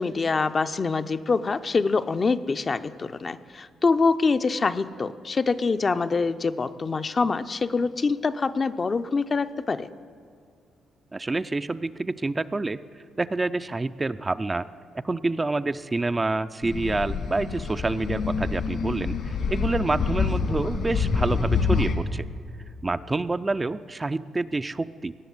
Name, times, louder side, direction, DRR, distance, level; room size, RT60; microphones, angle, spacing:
voice 1, 0.0-9.9, left 4 dB, 35° left, 11 dB, 0.5 m, -25 dB
voice 2, 11.1-12.8 13.2-14.7 15.0-22.2 22.8-25.2, right 2 dB, 20° right, 12 dB, 0.4 m, -27 dB
sound 1, 16.6-22.0, left 5 dB, 65° left, 1.8 m, -26 dB
17.5 x 6.8 x 9.5 m, 2.2 s
cardioid pair, 90°, 0 cm